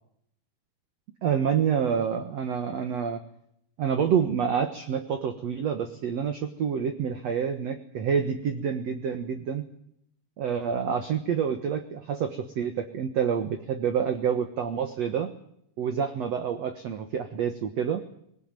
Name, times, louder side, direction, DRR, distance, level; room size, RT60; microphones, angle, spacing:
voice 1, 1.2-3.2 3.8-9.6 10.4-15.3 15.8-18.0, right 7 dB, 60° right, 7 dB, 2.0 m, -28 dB
21.0 x 17.5 x 9.0 m, 0.71 s
omnidirectional pair, 4.6 m